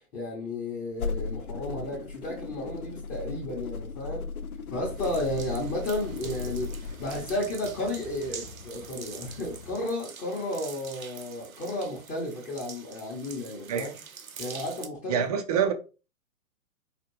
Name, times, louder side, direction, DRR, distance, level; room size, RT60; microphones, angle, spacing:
voice 1, 0.1-4.3 4.7-6.7 7.0-13.9 14.4-15.3, left 1 dB, 20° left, 0.9 m, -33 dB
sound 1, 0.9-7.4, left 4 dB, 80° left, 0.6 m, -36 dB
sound 2, 4.7-9.9, left 4 dB, 50° left, 0.8 m, -47 dB
sound 3, 5.0-14.9, right 7 dB, 70° right, 0.7 m, -45 dB
voice 2, 15.1-15.7, right 7 dB, 30° right, 0.5 m, -26 dB
4.9 x 2.4 x 3.1 m
figure-of-eight pair, 115°, 43 cm